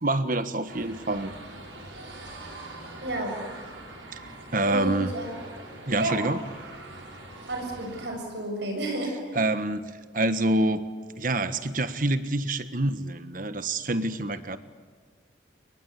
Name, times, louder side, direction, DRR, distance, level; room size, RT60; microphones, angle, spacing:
voice 1, 0.0-1.3 4.1-5.1 5.9-6.4 9.3-10.8 11.2-14.6, right 2 dB, 45° right, 11 dB, 1.4 m, -27 dB
sound 1, 0.7-8.1, right 2 dB, 85° right, 6.8 m, -43 dB
voice 2, 3.0-3.4 4.7-5.3 6.0-6.2 7.5-9.4, right 2 dB, 65° right, 3 dB, 7.2 m, -31 dB
29.5 x 23.0 x 8.4 m, 1.5 s
head